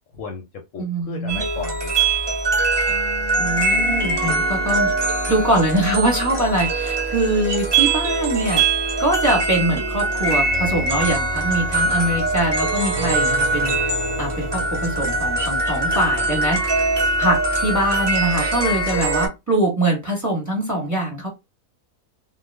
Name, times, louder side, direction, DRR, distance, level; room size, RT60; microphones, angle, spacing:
voice 1, 0.1-1.9 12.0-12.2, left 4 dB, 65° left, 0.9 m, -35 dB
voice 2, 0.8-1.4 3.4-4.9 5.3-8.6 9.0-13.8 14.2-16.6 17.2-21.3, right 1 dB, 15° right, 1.0 m, -23 dB
sound 1, 1.3-19.3, right 2 dB, 30° right, 0.4 m, -22 dB
2.3 x 2.3 x 3.2 m
omnidirectional pair, 1.6 m